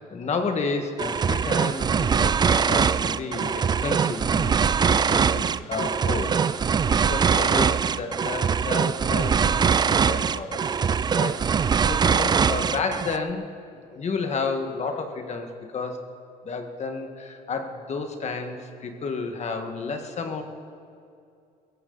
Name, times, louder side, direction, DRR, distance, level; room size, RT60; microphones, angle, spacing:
voice 1, 0.0-10.6 11.0-13.5 13.9-16.0 16.4-20.4, left 4 dB, 40° left, 5 dB, 1.7 m, -31 dB
sound 1, 1.0-13.2, right 6 dB, 25° right, 0.3 m, -22 dB
21.5 x 15.5 x 4.1 m, 2.4 s
cardioid pair, 110°, 17 cm